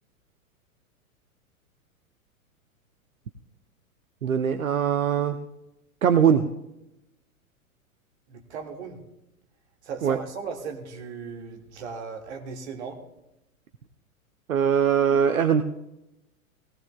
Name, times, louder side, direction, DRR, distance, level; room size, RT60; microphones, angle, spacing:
voice 1, 4.2-5.4 6.0-6.4 10.0-10.2 14.5-15.6, right 8 dB, 70° right, 9 dB, 0.8 m, -21 dB
voice 2, 8.3-9.0 9.8-13.0, right 5 dB, 50° right, 3 dB, 1.9 m, -37 dB
19.0 x 17.5 x 2.2 m, 0.90 s
figure-of-eight pair, 100°, 43 cm